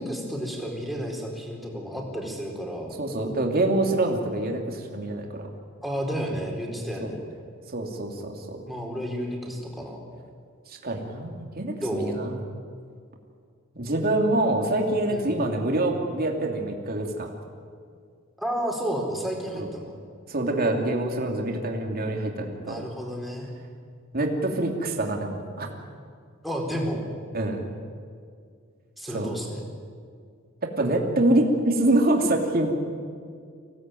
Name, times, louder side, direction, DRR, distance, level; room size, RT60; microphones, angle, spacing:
voice 1, 0.0-2.9 5.8-7.2 8.7-10.0 11.8-12.2 15.1-15.3 18.4-20.0 22.6-23.5 26.4-27.0 29.0-29.6, equal, ahead, -1 dB, 4.4 m, -31 dB
voice 2, 3.0-5.5 7.0-7.1 7.7-8.6 10.7-12.4 13.8-17.3 19.5-19.7 20.3-22.9 24.1-25.7 27.3-27.6 29.1-29.3 30.8-32.7, right 1 dB, 45° right, 2 dB, 2.9 m, -25 dB
25.0 x 18.0 x 9.3 m, 2.2 s
head